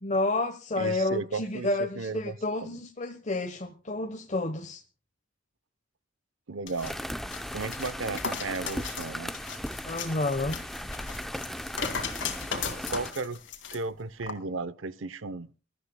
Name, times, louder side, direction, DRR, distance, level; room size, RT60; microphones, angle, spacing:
voice 1, 0.0-4.8 9.8-10.6, left 2 dB, 35° left, 1.1 m, -30 dB
voice 2, 0.8-1.7 2.0-2.4 2.7-2.8 6.5-6.9 7.5-9.4 12.9-13.4 13.7-15.5, right 3 dB, 75° right, 0.8 m, -34 dB
sound 1, 6.7-13.8 14.2-14.3, left 6 dB, 70° left, 2.7 m, -37 dB
sound 2, 6.8-13.1, equal, ahead, 0.6 m, -37 dB
23.5 x 13.5 x 2.2 m
head